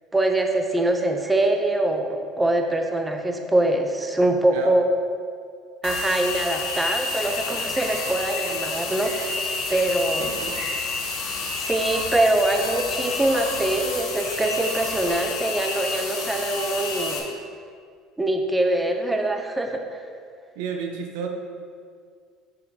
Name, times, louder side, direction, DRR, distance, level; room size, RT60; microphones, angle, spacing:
voice 1, 0.1-4.8 5.8-9.4 9.7-10.3 11.6-17.3 18.2-20.1, right 1 dB, 10° right, 4 dB, 0.6 m, -23 dB
sound 1, 5.8-17.2, left 3 dB, 75° left, 1.4 m, -29 dB
sound 2, 7.1-15.1, left 4 dB, 50° left, 1.3 m, -41 dB
voice 2, 10.2-10.6 20.5-21.3, right 6 dB, 80° right, 3 dB, 0.8 m, -31 dB
6.9 x 6.7 x 2.8 m, 2.2 s
supercardioid pair, 95°, 0 cm